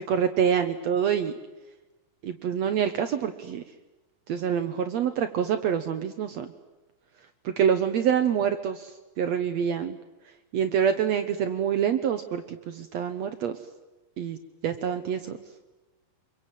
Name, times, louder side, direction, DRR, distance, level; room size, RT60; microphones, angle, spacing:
voice 1, 0.0-1.3 2.2-3.6 4.3-6.5 7.4-10.0 10.5-13.6 14.2-14.4 14.6-15.4, right 8 dB, 65° right, 9 dB, 1.9 m, -26 dB
26.5 x 23.0 x 9.2 m, 1.1 s
omnidirectional pair, 3.8 m